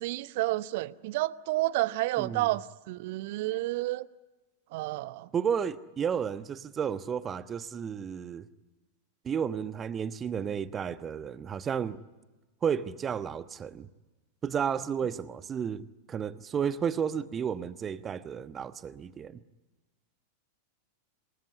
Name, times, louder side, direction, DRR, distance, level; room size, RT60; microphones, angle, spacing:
voice 1, 0.0-4.1 4.7-5.3, right 18 dB, 50° right, 0.8 m, -30 dB
voice 2, 2.2-2.5 5.3-8.5 9.2-12.0 12.6-13.9 14.4-19.4, right 7 dB, 25° right, 1.2 m, -32 dB
28.0 x 20.0 x 9.8 m
figure-of-eight pair, 90°, 0 cm